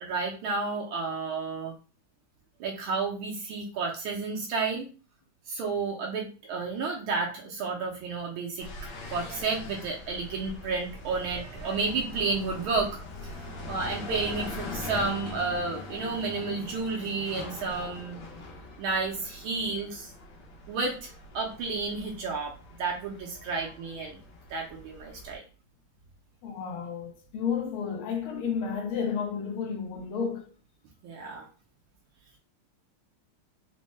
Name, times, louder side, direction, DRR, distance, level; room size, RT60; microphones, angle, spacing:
voice 1, 0.0-1.7 2.6-4.9 5.5-8.7 9.1-18.2 18.8-20.1 20.7-24.2 24.5-25.4 31.0-31.4, right 4 dB, 75° right, 1.5 m, -31 dB
sound 1, 8.6-25.4, left 2 dB, 60° left, 1.4 m, -42 dB
voice 2, 26.4-30.4, left 6 dB, 80° left, 1.6 m, -32 dB
4.4 x 2.1 x 3.1 m
omnidirectional pair, 2.4 m